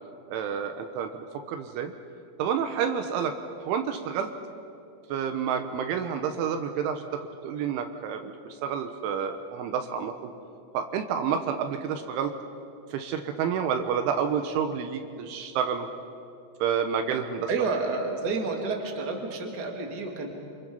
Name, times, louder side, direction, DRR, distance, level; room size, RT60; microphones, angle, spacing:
voice 1, 0.3-1.9 2.4-3.3 3.6-4.3 5.1-10.3 10.7-12.3 12.9-15.9 16.6-17.5, right 7 dB, 75° right, 6 dB, 3.3 m, -29 dB
voice 2, 17.5-20.3, right 3 dB, 35° right, 2 dB, 1.6 m, -30 dB
27.5 x 26.0 x 5.4 m, 2.5 s
omnidirectional pair, 5.8 m